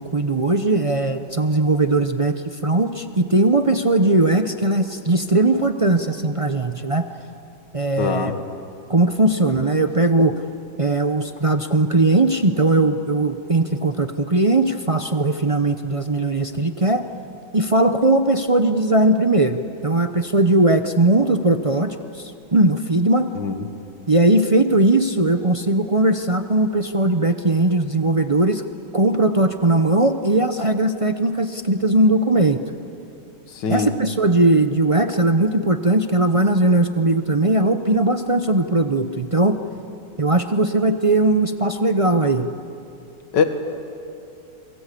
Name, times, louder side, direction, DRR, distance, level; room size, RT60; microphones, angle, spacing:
voice 1, 0.0-2.4 2.6-7.1 7.7-8.3 8.9-10.3 10.8-17.0 17.5-23.3 24.1-28.6 28.9-32.6 33.7-39.6 40.2-42.5, right 2 dB, 35° right, 7 dB, 0.5 m, -19 dB
voice 2, 8.0-8.3 23.4-23.7 33.5-33.9 43.3-43.4, left 5 dB, 75° left, 7 dB, 2.1 m, -22 dB
29.0 x 22.5 x 8.4 m, 2.7 s
omnidirectional pair, 1.9 m